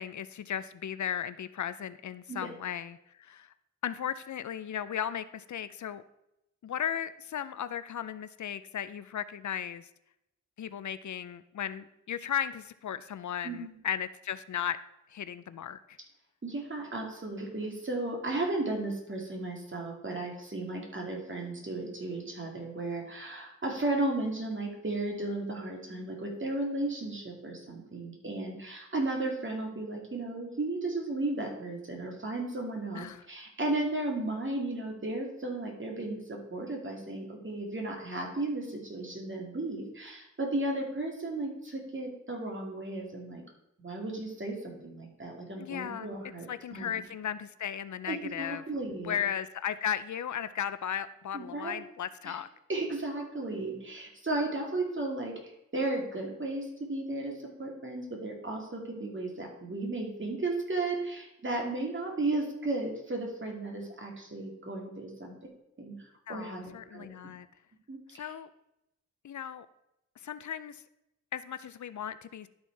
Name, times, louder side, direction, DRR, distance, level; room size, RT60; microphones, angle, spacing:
voice 1, 0.0-3.5 3.8-6.0 6.6-9.9 10.6-14.8 15.1-16.0 32.9-33.2 45.6-46.1 46.5-48.6 49.0-52.5 66.3-67.5 68.1-68.5 69.2-69.7 70.2-70.8 71.3-72.5, left 9 dB, 70° left, 14 dB, 0.5 m, -36 dB
voice 2, 13.4-13.7 16.4-43.4 43.8-47.0 48.1-49.2 51.3-51.7 52.3-52.4 52.7-65.5 65.8-67.1 67.9-68.3, right 2 dB, 40° right, 0 dB, 2.4 m, -35 dB
12.0 x 4.4 x 4.6 m, 0.85 s
cardioid pair, 65°, 31 cm